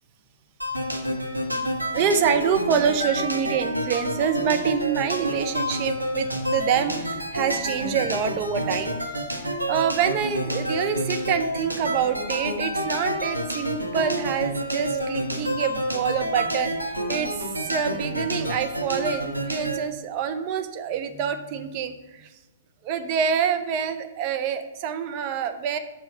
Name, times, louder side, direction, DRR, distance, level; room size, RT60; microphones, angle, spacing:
sound 1, 0.6-19.8, equal, 90° right, 0.9 m, -29 dB
voice 1, 1.9-22.3 22.8-25.8, right 7 dB, 35° right, 8 dB, 0.6 m, -26 dB
6.3 x 4.7 x 5.6 m, 1.1 s
figure-of-eight pair, 115°, 0 cm